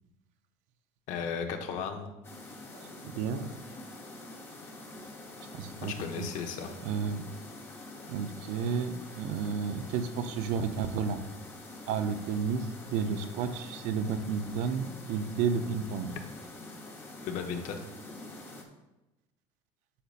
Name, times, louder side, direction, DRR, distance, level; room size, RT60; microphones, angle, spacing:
voice 1, 1.1-2.1 5.8-6.7 17.2-17.8, left 6 dB, 60° left, 5 dB, 1.0 m, -35 dB
sound 1, 2.2-18.6, left 2 dB, 15° left, 0.9 m, -46 dB
voice 2, 2.7-3.5 5.5-6.3 6.8-7.2 8.1-11.2 11.9-16.2, right 6 dB, 60° right, 9 dB, 0.6 m, -32 dB
8.6 x 6.7 x 2.5 m, 0.98 s
cardioid pair, 165°, 14 cm